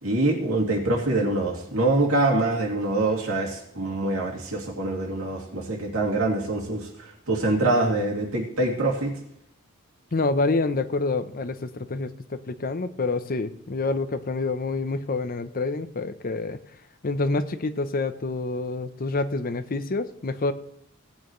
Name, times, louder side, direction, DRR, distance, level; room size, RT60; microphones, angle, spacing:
voice 1, 0.0-6.9 7.3-9.2, right 2 dB, 70° right, -1 dB, 2.6 m, -24 dB
voice 2, 10.1-16.6 17.0-20.5, left 3 dB, 40° left, 11 dB, 0.7 m, -27 dB
17.5 x 8.6 x 3.1 m, 0.70 s
head